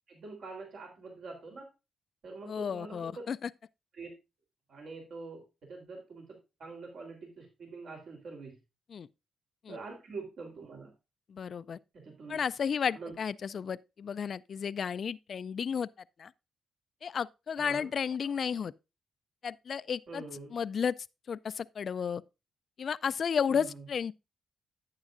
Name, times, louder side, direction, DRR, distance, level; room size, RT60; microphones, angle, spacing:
voice 1, 0.1-1.7 2.2-3.3 4.0-4.1 4.7-5.4 5.7-8.6 9.7-10.9 12.0-12.4 13.0-13.1 17.6-17.9 20.1-20.6 23.5-23.8, right 3 dB, 70° right, 3.4 m, -45 dB
voice 2, 2.5-3.5 8.9-9.1 9.6-9.8 11.3-11.8 12.3-15.9 16.2-16.3 17.0-18.7 19.4-20.2 20.5-20.9 21.3-22.2 22.8-24.1, left 7 dB, 60° left, 0.3 m, -33 dB
10.5 x 8.8 x 2.5 m
cardioid pair, 70°, 0 cm